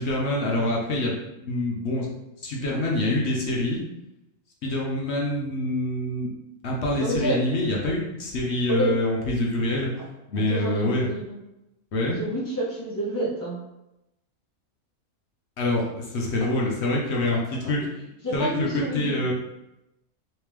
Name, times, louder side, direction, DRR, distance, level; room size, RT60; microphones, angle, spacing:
voice 1, 0.0-2.1 2.4-3.8 4.6-6.3 6.6-9.9 10.3-11.1 11.9-12.2 15.6-17.8 18.3-19.3, left 1 dB, 55° left, -2 dB, 0.9 m, -26 dB
voice 2, 7.0-7.4 8.7-8.9 10.3-11.4 12.0-13.6 18.2-19.3, right 1 dB, 20° left, -5 dB, 0.7 m, -28 dB
3.5 x 3.2 x 3.1 m, 0.91 s
omnidirectional pair, 1.5 m